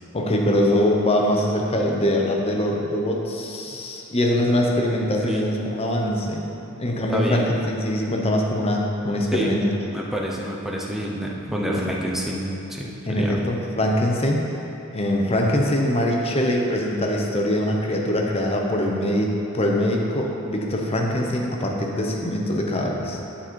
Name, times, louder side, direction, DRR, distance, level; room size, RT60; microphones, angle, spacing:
voice 1, 0.1-6.5 6.8-9.7 11.7-11.9 13.1-14.4 14.9-23.2, left 1 dB, 25° left, 0 dB, 0.8 m, -23 dB
voice 2, 7.1-7.5 9.3-9.5 9.9-13.4, equal, ahead, -3 dB, 0.8 m, -28 dB
11.5 x 4.2 x 4.4 m, 2.9 s
head